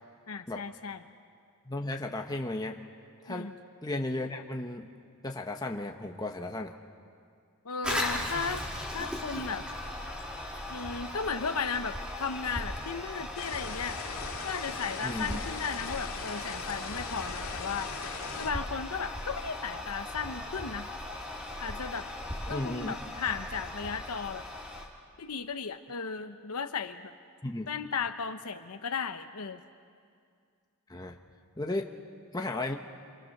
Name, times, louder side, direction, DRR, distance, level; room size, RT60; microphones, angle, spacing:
voice 1, 0.3-1.0 3.3-3.5 7.6-8.6 8.9-9.7 10.7-14.0 14.4-17.9 18.4-20.9 21.6-22.1 22.5-24.5 25.2-27.1 27.7-29.6, left 5 dB, 85° left, 7 dB, 0.9 m, -35 dB
voice 2, 1.7-2.8 3.2-3.5 3.8-4.9 5.2-6.7 15.0-15.4 22.5-23.0 27.4-27.7 30.9-31.2 31.6-31.9 32.3-32.8, left 2 dB, 15° left, 2 dB, 1.1 m, -34 dB
Toilet flush, 7.8-24.9, left 1 dB, 5° right, 2.8 m, -38 dB
sound 1, 13.3-18.5, left 5 dB, 70° left, 2.3 m, -40 dB
28.0 x 27.5 x 6.6 m, 2.3 s
head